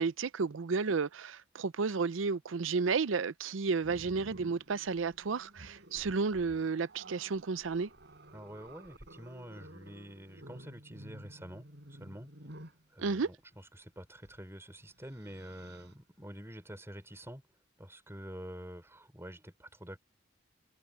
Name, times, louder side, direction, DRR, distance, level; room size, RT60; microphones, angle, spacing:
voice 1, 0.0-7.9 13.0-13.3, right 4 dB, 80° right, 0.6 m, -32 dB
Growling, 3.8-12.8 14.2-14.4 14.8-16.0, right 1 dB, 60° right, 4.9 m, -53 dB
voice 2, 8.3-12.3 12.9-17.4 17.8-20.0, equal, 15° right, 4.1 m, -47 dB
head